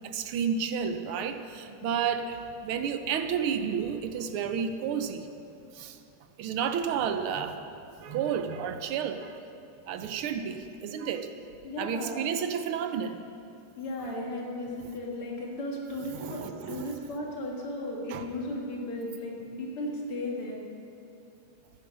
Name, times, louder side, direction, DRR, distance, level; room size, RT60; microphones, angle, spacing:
voice 1, 0.0-5.3 5.7-6.0 6.4-7.6 8.0-9.4 9.9-11.3 11.8-13.2 14.0-14.1 16.1-16.9 18.1-18.3, right 7 dB, 75° right, 8 dB, 1.6 m, -31 dB
voice 2, 1.8-2.1 11.6-12.3 13.8-20.6, left 1 dB, 80° left, -2 dB, 2.9 m, -35 dB
14.0 x 10.0 x 6.2 m, 2.6 s
omnidirectional pair, 2.4 m